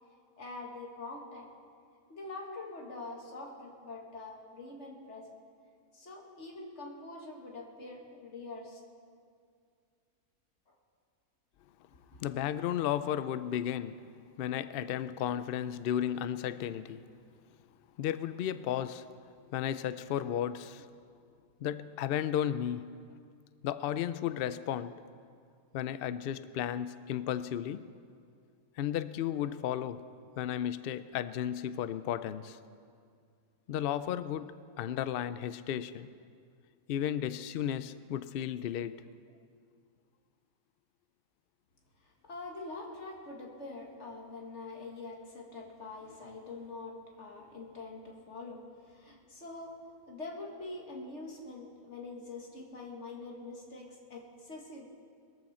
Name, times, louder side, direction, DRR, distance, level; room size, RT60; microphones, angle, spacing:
voice 1, 0.4-1.5 2.1-5.3 5.9-8.8 10.7-10.8 12.1-12.2 42.0-54.9, left 3 dB, 50° left, 2.2 m, -45 dB
voice 2, 12.2-14.1 14.4-17.1 18.0-19.1 19.5-20.9 21.6-23.0 23.6-24.9 25.7-27.9 28.8-30.1 30.4-32.6 33.7-36.1 36.9-39.1, left 10 dB, 85° left, 0.5 m, -34 dB
21.0 x 14.0 x 4.3 m
omnidirectional pair, 1.5 m